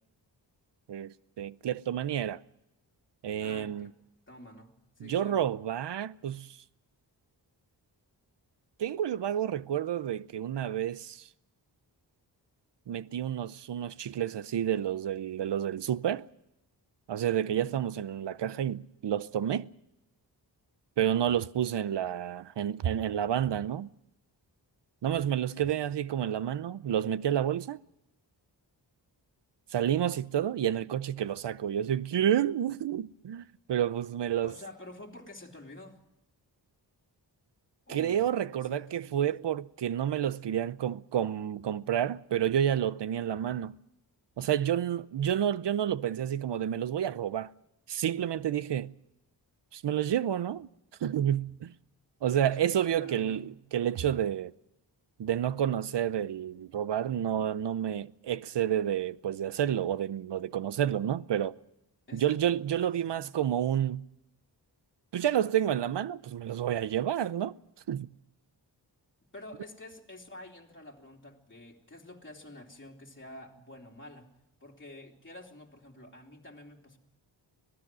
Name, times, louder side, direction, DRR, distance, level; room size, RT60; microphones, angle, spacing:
voice 1, 0.9-2.4 3.2-3.9 5.0-6.6 8.8-11.3 12.9-16.3 17.1-19.7 21.0-23.9 25.0-27.8 29.7-34.5 37.9-43.8 44.4-47.5 47.9-48.9 49.7-50.7 51.0-51.7 52.2-54.5 55.2-61.6 62.1-64.1 65.1-67.5 67.9-68.1, right 10 dB, 70° right, 0.7 m, -30 dB
voice 2, 3.4-3.9 4.3-5.5 17.5-17.8 25.6-25.7 34.4-36.0 37.9-39.2 52.5-53.5 62.1-62.6 62.9-63.3 69.3-74.3 74.6-77.0, left 1 dB, 25° left, 3.2 m, -49 dB
25.5 x 18.0 x 6.2 m
wide cardioid pair, 160°, 43 cm